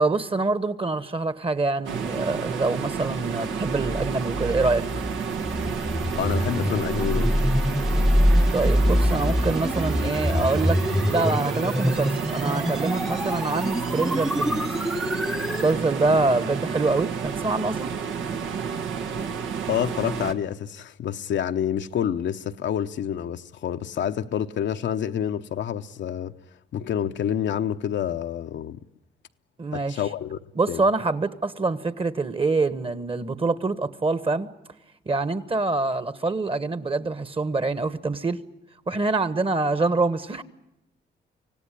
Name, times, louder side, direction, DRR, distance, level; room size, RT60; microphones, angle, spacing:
voice 1, 0.0-4.9 8.5-10.8 11.1-14.6 15.6-17.9 29.6-30.0 30.6-34.5 35.1-38.4 38.9-40.4, right 3 dB, 30° right, 1.3 m, -25 dB
sound 1, 1.8-20.3, right 6 dB, 85° right, 1.5 m, -31 dB
sound 2, 3.6-15.8, equal, ahead, 0.8 m, -25 dB
voice 2, 6.2-7.3 19.7-26.3 26.7-28.8 29.7-30.4 30.7-30.8, left 9 dB, 70° left, 0.9 m, -28 dB
25.5 x 17.5 x 9.9 m
cardioid pair, 80°, 19 cm